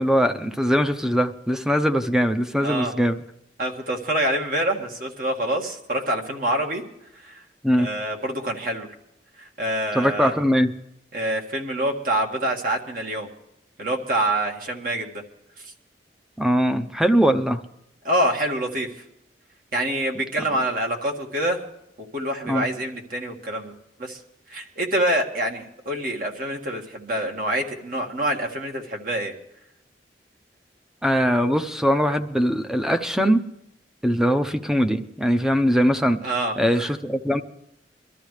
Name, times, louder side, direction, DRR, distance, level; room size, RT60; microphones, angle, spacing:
voice 1, 0.0-3.2 7.6-7.9 9.9-10.7 16.4-17.6 22.5-22.7 31.0-33.4 34.0-36.2 36.6-37.4, equal, 5° right, 9 dB, 0.7 m, -21 dB
voice 2, 2.6-2.9 3.6-6.8 7.2-7.4 7.8-8.9 9.4-10.3 11.1-13.3 13.8-15.2 18.0-18.9 19.7-21.6 22.1-24.2 24.5-29.3 36.2-36.9, right 1 dB, 55° right, 2 dB, 1.9 m, -26 dB
23.0 x 13.0 x 3.3 m, 0.82 s
head